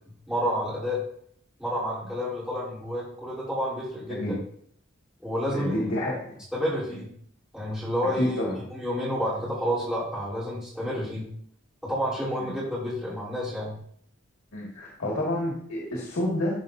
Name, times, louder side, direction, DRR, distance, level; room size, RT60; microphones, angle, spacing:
voice 1, 0.3-1.0 1.6-4.4 5.2-5.9 6.6-7.1 7.5-11.3 11.8-13.8, equal, 5° right, -10 dB, 3.4 m, -30 dB
voice 2, 5.5-6.3 8.2-8.5 12.4-12.5 14.5-16.6, left 1 dB, 90° left, -4 dB, 1.8 m, -29 dB
12.5 x 4.8 x 2.6 m, 0.64 s
head